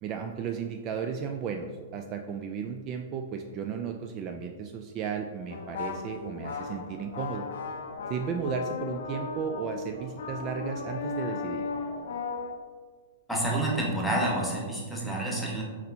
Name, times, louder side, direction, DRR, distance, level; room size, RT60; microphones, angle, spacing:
voice 1, 0.0-7.5 8.1-11.6, right 6 dB, 35° right, 4 dB, 0.3 m, -34 dB
sound 1, 5.5-12.5, left 4 dB, 70° left, 0.5 m, -36 dB
voice 2, 13.3-15.6, right 1 dB, 5° left, -3 dB, 1.1 m, -28 dB
4.3 x 4.1 x 2.7 m, 1.6 s
hypercardioid pair, 110°, 0 cm